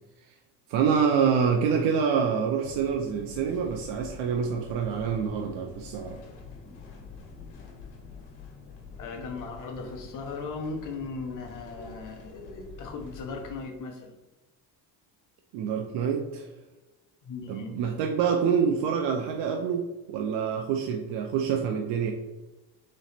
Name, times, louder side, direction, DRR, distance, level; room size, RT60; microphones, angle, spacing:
voice 1, 0.7-6.2 15.5-16.5 17.5-22.1, right 6 dB, 85° right, 3 dB, 0.6 m, -26 dB
sound 1, 2.6-13.6, left 4 dB, 80° left, 1.3 m, -46 dB
voice 2, 9.0-14.1 17.2-17.8, left 4 dB, 50° left, 2 dB, 1.0 m, -37 dB
4.0 x 3.2 x 4.1 m, 1.1 s
cardioid pair, 135°, 40 cm